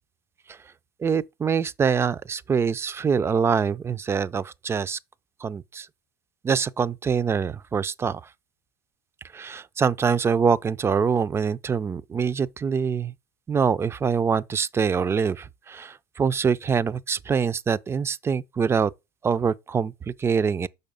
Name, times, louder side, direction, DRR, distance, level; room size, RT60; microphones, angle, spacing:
voice 1, 1.0-5.0 5.4-5.9 6.4-8.2 9.3-13.1 13.5-18.9 19.2-20.7, right 6 dB, 20° right, 0.4 m, -24 dB
6.5 x 5.4 x 3.8 m
hypercardioid pair, 80°, 12 cm